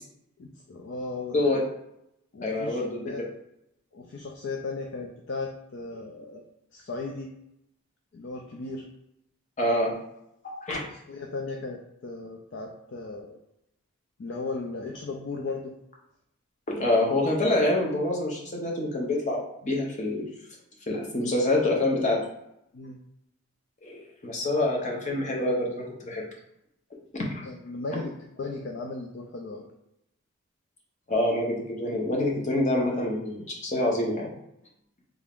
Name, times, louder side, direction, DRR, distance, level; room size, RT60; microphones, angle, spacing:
voice 1, 0.4-1.4 2.3-3.2 3.9-6.4 6.7-7.3 8.1-8.9 10.8-13.4 14.2-15.7 22.7-23.0 27.4-29.7, left 3 dB, 50° left, 1 dB, 0.4 m, -36 dB
voice 2, 2.4-3.0 9.6-9.9 10.4-10.8 16.7-20.3 20.9-22.2 23.8-26.2 27.3-27.4 31.1-34.3, left 1 dB, 35° left, -2 dB, 0.7 m, -26 dB
3.4 x 2.4 x 3.5 m, 0.80 s
head